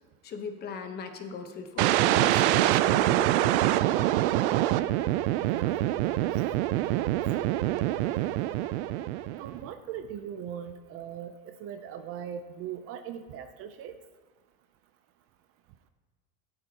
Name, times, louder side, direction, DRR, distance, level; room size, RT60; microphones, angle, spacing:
voice 1, 0.2-3.8 4.5-4.6, left 3 dB, 30° left, 6 dB, 1.1 m, -39 dB
sound 1, 1.8-9.6, right 15 dB, 90° right, 0.5 m, -25 dB
voice 2, 5.4-6.3 6.8-8.3 9.4-14.0, right 9 dB, 40° right, 9 dB, 0.6 m, -40 dB
15.5 x 13.0 x 2.9 m, 1.4 s
cardioid pair, 155°, 33 cm